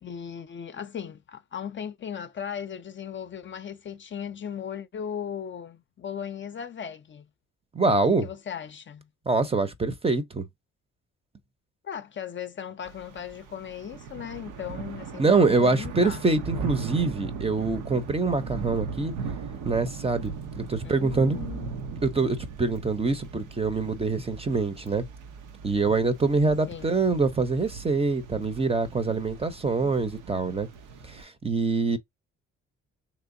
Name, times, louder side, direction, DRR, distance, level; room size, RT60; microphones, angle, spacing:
voice 1, 0.0-7.3 8.2-9.1 11.8-16.2 20.8-21.8 26.7-27.0, left 8 dB, 40° left, 0.5 m, -37 dB
voice 2, 7.7-8.3 9.3-10.4 15.2-19.1 19.6-20.3 20.6-21.4 22.0-25.1 25.6-30.7 31.1-32.0, right 3 dB, 20° right, 0.7 m, -25 dB
Thunder / Rain, 12.8-31.2, right 5 dB, 85° right, 0.8 m, -39 dB
3.3 x 3.0 x 2.6 m
cardioid pair, 90°, 30 cm